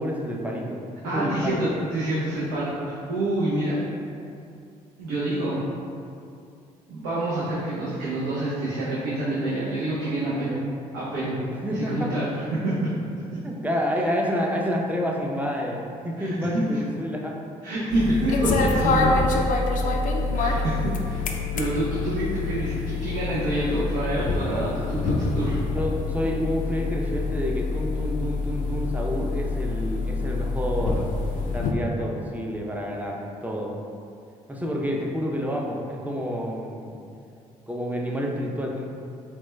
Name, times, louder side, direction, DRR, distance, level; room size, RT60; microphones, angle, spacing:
voice 1, 0.0-1.6 11.5-12.1 13.4-17.4 25.7-31.1 31.5-33.8 34.5-37.0 37.7-38.9, equal, 10° right, -1 dB, 0.5 m, -29 dB
voice 2, 1.0-3.8 5.0-5.6 6.9-10.6 10.9-11.4 11.7-12.7 16.2-16.6 17.6-19.2 20.3-21.2 21.5-25.6, right 1 dB, 80° right, -10 dB, 0.6 m, -27 dB
sound 1, 17.9-31.7, left 3 dB, 55° left, 0.4 m, -26 dB
4.3 x 2.2 x 2.2 m, 2.5 s
hypercardioid pair, 55°, 16 cm